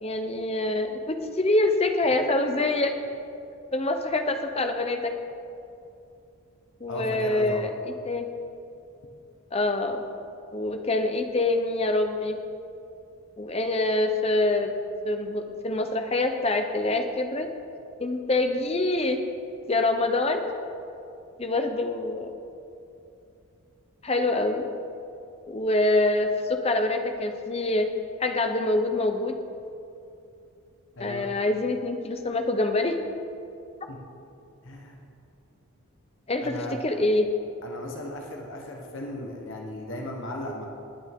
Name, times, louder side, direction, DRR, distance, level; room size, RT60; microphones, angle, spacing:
voice 1, 0.0-2.9 3.7-5.1 6.8-7.7 8.0-8.3 9.5-10.0 10.5-12.4 13.4-14.7 15.0-17.5 18.0-19.2 19.7-20.5 21.4-22.3 24.0-24.7 25.5-27.9 28.2-29.3 31.0-32.9 36.3-37.3, left 2 dB, 25° left, 5 dB, 0.7 m, -25 dB
voice 2, 6.9-7.7 31.0-31.3 33.9-34.0 34.6-35.0 36.4-36.8 37.6-40.7, left 1 dB, 55° left, 1 dB, 1.2 m, -36 dB
19.5 x 8.8 x 3.7 m, 2.7 s
head